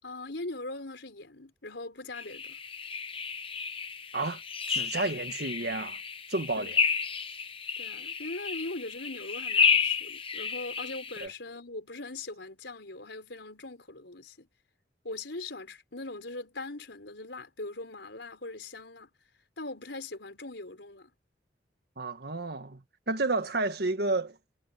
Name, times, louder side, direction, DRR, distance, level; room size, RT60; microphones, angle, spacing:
voice 1, 0.0-2.6 6.6-6.7 7.8-14.5 15.0-19.1 19.6-21.1, left 2 dB, 80° left, 4.5 m, -41 dB
sound 1, 2.1-11.3, left 6 dB, 30° left, 1.1 m, -31 dB
voice 2, 4.7-6.0 6.3-6.7 11.2-11.3 22.0-24.4, right 2 dB, 60° right, 1.7 m, -31 dB
head